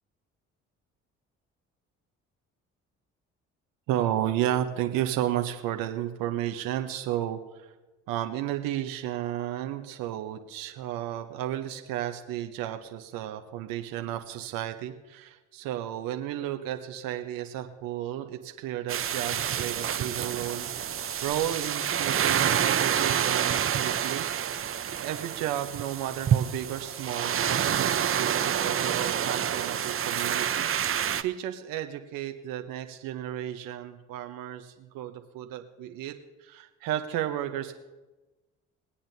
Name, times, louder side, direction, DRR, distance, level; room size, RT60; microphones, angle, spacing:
voice 1, 3.9-7.7 8.1-20.7 21.2-24.7 25.0-36.1 36.4-37.8, right 12 dB, 70° right, 6 dB, 0.9 m, -33 dB
sound 1, 18.9-31.2, right 9 dB, 40° right, 0.7 m, -28 dB
22.0 x 8.6 x 2.7 m, 1.1 s
hypercardioid pair, 50°, 34 cm